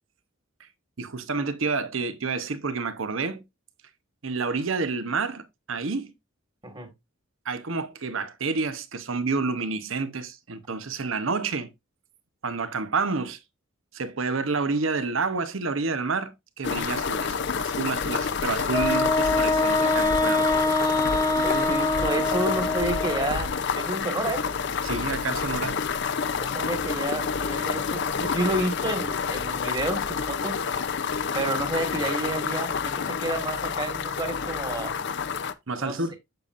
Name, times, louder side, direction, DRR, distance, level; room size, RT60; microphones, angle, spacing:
voice 1, 1.0-3.4 4.2-6.1 7.4-11.7 12.4-13.4 13.9-20.5 24.8-25.8 35.7-36.1, right 4 dB, 70° right, 0.9 m, -29 dB
sound 1, 16.6-35.5, left 6 dB, 55° left, 0.5 m, -29 dB
Wind instrument woodwind instrument, 18.7-23.4, left 2 dB, 20° left, 0.7 m, -24 dB
voice 2, 19.2-19.6 21.4-24.5 26.4-30.6 31.3-34.9 35.8-36.2, right 2 dB, 20° right, 1.7 m, -30 dB
8.0 x 6.7 x 2.5 m
head